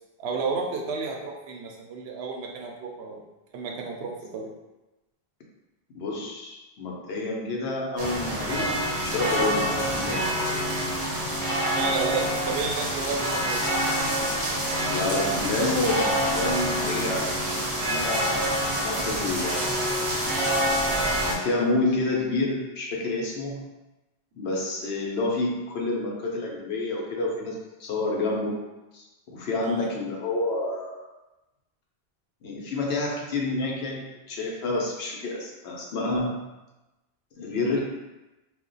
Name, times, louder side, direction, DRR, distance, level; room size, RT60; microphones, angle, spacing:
voice 1, 0.2-3.2 3.5-4.5 11.7-13.7 29.6-29.8, right 4 dB, 85° right, 1 dB, 0.8 m, -32 dB
voice 2, 5.9-10.3 14.9-17.3 17.9-19.7 20.9-23.6 24.3-28.6 28.9-31.1 32.4-36.5 37.4-37.8, left 2 dB, 75° left, -2 dB, 0.9 m, -29 dB
sound 1, 8.0-21.3, equal, 50° right, 0.8 m, -26 dB
2.4 x 2.2 x 3.8 m, 1.0 s
omnidirectional pair, 1.1 m